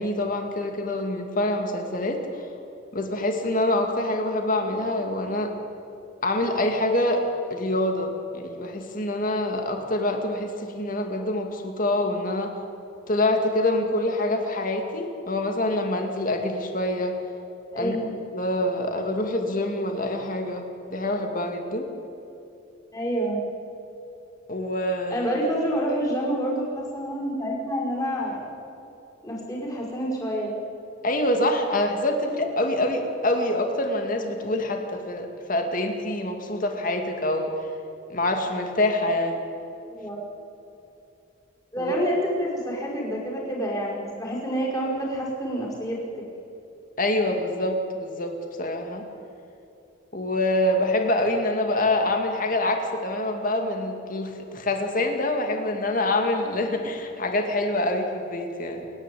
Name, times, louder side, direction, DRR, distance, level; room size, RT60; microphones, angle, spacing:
voice 1, 0.0-2.5 2.9-5.5 6.2-7.2 7.5-12.5 13.1-17.2 17.8-18.0 18.3-20.6 20.9-21.9 24.5-25.3 31.0-37.5 38.1-39.5 41.8-41.9 47.0-49.0 50.1-58.9, left 1 dB, 45° left, 4 dB, 2.3 m, -26 dB
voice 2, 17.7-18.1 22.9-23.4 25.1-28.4 29.2-30.5 39.9-40.2 41.7-46.0, equal, 20° left, -4 dB, 5.4 m, -28 dB
28.0 x 11.0 x 8.5 m, 2.8 s
head